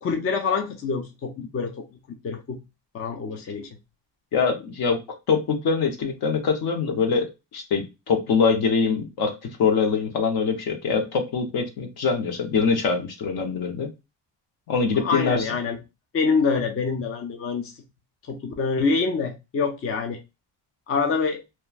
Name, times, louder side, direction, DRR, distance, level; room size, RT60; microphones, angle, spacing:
voice 1, 0.0-1.7 2.2-2.6 2.9-3.7 14.9-15.8 16.1-17.7 18.3-20.2 20.9-21.4, left 4 dB, 35° left, 0.5 m, -25 dB
voice 2, 4.3-5.0 5.3-7.3 7.5-13.9 14.7-15.4, left 5 dB, 60° left, 0.9 m, -23 dB
2.9 x 2.3 x 2.4 m
cardioid pair, 110°, 43 cm